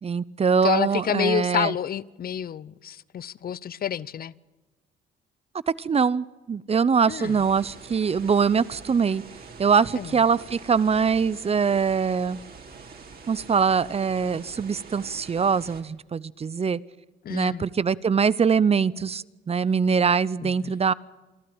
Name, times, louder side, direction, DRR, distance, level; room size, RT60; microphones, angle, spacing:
voice 1, 0.0-1.7 5.7-9.2 9.6-12.4 13.3-16.8 17.3-20.9, right 6 dB, 30° right, 20 dB, 0.7 m, -23 dB
voice 2, 0.6-4.3 7.1-7.4 9.9-10.2 17.2-17.7 20.4-20.7, left 9 dB, 50° left, 21 dB, 0.7 m, -29 dB
sound 1, 7.2-15.8, right 4 dB, 50° right, 3.6 m, -45 dB
27.5 x 12.0 x 8.8 m, 1.2 s
cardioid pair, 90°, 20 cm